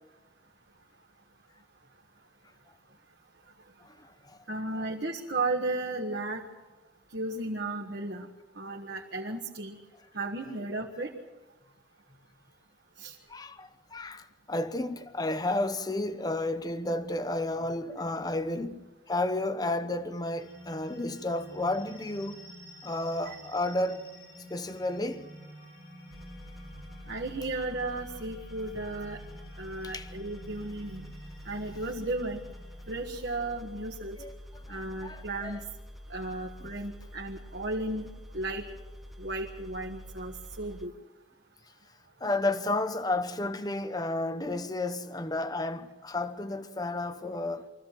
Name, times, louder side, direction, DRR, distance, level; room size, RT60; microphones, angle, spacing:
voice 1, 3.8-4.4 13.3-22.4 22.8-24.1 24.5-25.3 29.8-30.1 34.2-34.3 34.7-35.5 36.6-36.7 42.2-47.7, left 2 dB, 20° left, 0.9 m, -32 dB
voice 2, 4.5-6.4 7.1-8.3 8.5-9.7 10.1-11.1 13.0-13.1 23.2-23.3 27.1-29.2 29.6-31.1 31.4-32.4 32.9-34.2 34.7-35.6 36.1-38.6 39.2-40.9, right 2 dB, 65° right, 1.6 m, -34 dB
sound 1, 20.4-33.2, equal, 90° left, 7.1 m, -50 dB
sound 2, 26.1-40.9, equal, ahead, 0.6 m, -47 dB
24.0 x 15.5 x 7.6 m
head